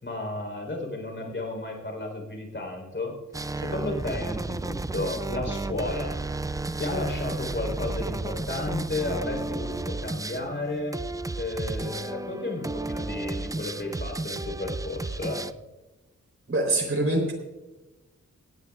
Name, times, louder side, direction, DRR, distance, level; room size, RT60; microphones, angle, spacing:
voice 1, 0.0-3.2 3.6-6.2 6.8-11.0 11.4-15.5, left 2 dB, 40° left, 2 dB, 4.0 m, -33 dB
sound 1, 3.3-15.5, right 2 dB, 10° right, 0.3 m, -33 dB
voice 2, 16.5-17.3, right 2 dB, 45° right, 2 dB, 3.7 m, -24 dB
17.5 x 16.5 x 2.4 m, 1.1 s
wide cardioid pair, 95°, 29 cm